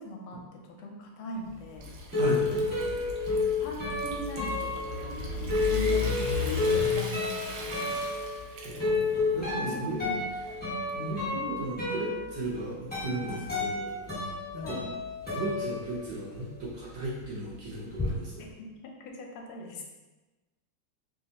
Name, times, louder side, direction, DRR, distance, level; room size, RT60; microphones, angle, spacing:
voice 1, 0.0-1.9 3.6-6.3 6.6-8.0 9.5-10.3 14.6-14.9 18.4-19.8, left 1 dB, 85° left, 1 dB, 1.5 m, -41 dB
Water tap faucet / Sink (filling or washing) / Trickle dribble, 1.3-11.3, right 3 dB, 80° right, 1.4 m, -45 dB
sound 1, 1.6-16.4 16.6-18.1, left 3 dB, 10° left, 0.7 m, -31 dB
sound 2, 1.8-7.4, left 3 dB, 65° left, 1.3 m, -35 dB
voice 2, 2.2-2.5 8.5-10.0 10.9-13.9 14.2-14.8 15.3-18.5, right 2 dB, 60° right, -7 dB, 1.2 m, -36 dB
3.5 x 3.0 x 2.8 m, 1.2 s
omnidirectional pair, 2.3 m